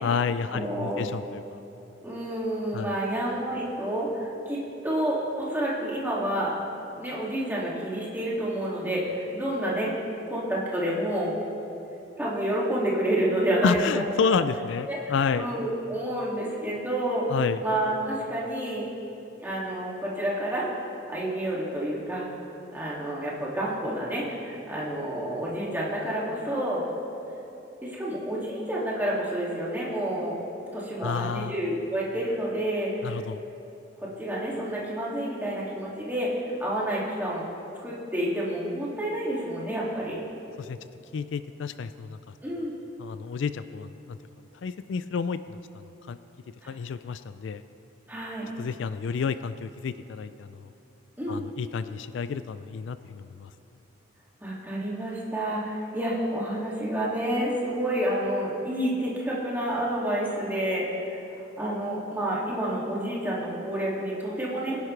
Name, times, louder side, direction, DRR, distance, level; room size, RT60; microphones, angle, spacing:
voice 1, 0.0-1.6 2.7-3.0 13.6-15.5 17.3-17.6 31.0-31.6 33.0-33.4 40.6-40.8 41.1-42.3 43.0-44.2 44.6-45.6 46.1-46.2 46.7-47.6 48.6-50.7 51.3-53.5, left 5 dB, 65° left, 12 dB, 0.3 m, -30 dB
voice 2, 0.5-1.1 2.0-4.6 4.8-6.5 7.0-9.9 10.3-11.3 12.2-14.0 14.3-14.4 14.9-15.0 15.4-17.2 17.6-18.9 19.4-20.7 21.1-22.2 22.7-26.9 27.8-30.4 30.7-33.2 34.0-37.4 37.8-40.2 42.4-42.7 46.6-46.7 48.1-48.5 51.2-51.4 54.4-60.9 61.1-61.2 61.6-64.8, right 1 dB, 10° right, -6 dB, 2.3 m, -29 dB
22.0 x 10.5 x 3.3 m, 2.9 s
head